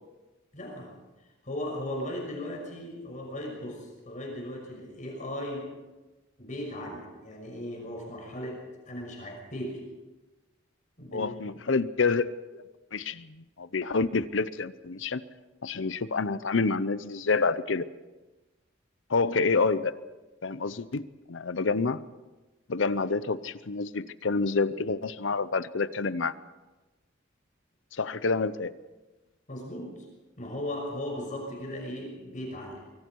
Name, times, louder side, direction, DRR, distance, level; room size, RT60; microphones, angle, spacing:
voice 1, 0.5-0.9 1.4-5.7 6.4-9.8 11.0-11.4 29.5-30.1 30.4-32.8, left 1 dB, 40° left, 0 dB, 6.1 m, -37 dB
voice 2, 11.1-12.6 12.9-15.2 15.6-17.8 19.1-19.9 20.4-21.0 21.3-22.0 22.7-26.3 27.9-28.7, left 4 dB, 70° left, 15 dB, 0.7 m, -28 dB
25.5 x 23.5 x 4.7 m, 1.2 s
head